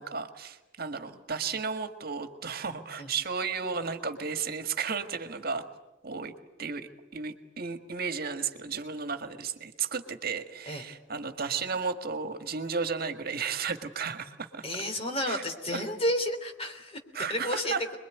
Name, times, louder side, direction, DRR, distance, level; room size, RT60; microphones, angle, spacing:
voice 1, 0.0-5.6 6.0-6.3 6.6-14.6 15.3-15.4 15.7-15.8 17.1-17.8, right 5 dB, 55° right, 8 dB, 1.8 m, -34 dB
voice 2, 14.6-17.0 17.3-18.0, left 1 dB, 30° left, 5 dB, 3.3 m, -31 dB
27.0 x 22.0 x 9.3 m, 1.0 s
head